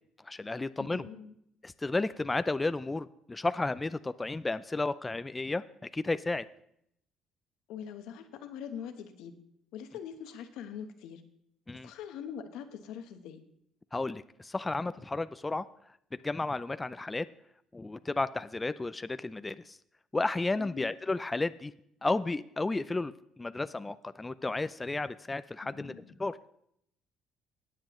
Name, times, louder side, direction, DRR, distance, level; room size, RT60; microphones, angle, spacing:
voice 1, 0.2-1.1 1.6-6.5 11.7-11.9 13.9-15.7 16.2-17.3 17.7-19.8 20.1-21.7 22.0-26.4, left 2 dB, 15° left, 13 dB, 0.4 m, -33 dB
voice 2, 0.8-1.3 7.7-9.3 9.7-11.2 11.8-13.4 20.6-20.9 25.6-26.2, left 8 dB, 85° left, 8 dB, 1.1 m, -43 dB
19.0 x 7.5 x 3.1 m, 0.73 s
cardioid pair, 105°, 0 cm